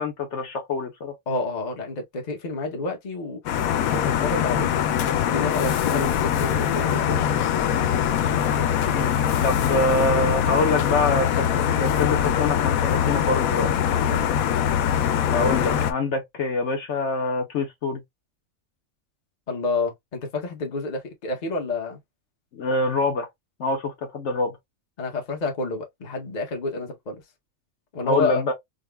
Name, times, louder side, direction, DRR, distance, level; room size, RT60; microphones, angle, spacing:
voice 1, 0.0-1.1 5.9-6.1 8.9-13.7 15.3-18.0 22.5-23.3 23.6-24.6 28.0-28.5, left 2 dB, 65° left, 1.0 m, -25 dB
voice 2, 1.3-4.8 5.3-7.4 14.1-14.3 19.5-22.0 25.0-27.2 27.9-28.5, left 3 dB, 35° left, 0.9 m, -29 dB
sound 1, 3.5-15.9, left 9 dB, 85° left, 1.0 m, -23 dB
5.1 x 2.1 x 2.2 m
omnidirectional pair, 1.4 m